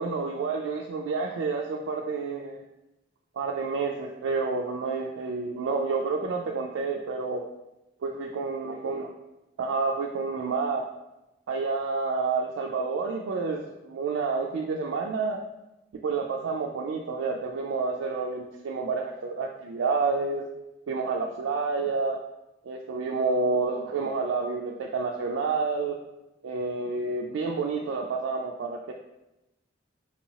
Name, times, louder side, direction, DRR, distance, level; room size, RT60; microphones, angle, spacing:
voice 1, 0.0-2.6 3.4-7.5 8.0-9.1 9.6-10.8 11.5-15.4 15.9-20.4 20.9-22.2 22.6-26.0 26.4-28.9, right 4 dB, 85° right, 1 dB, 0.3 m, -29 dB
4.6 x 2.8 x 2.7 m, 0.95 s
head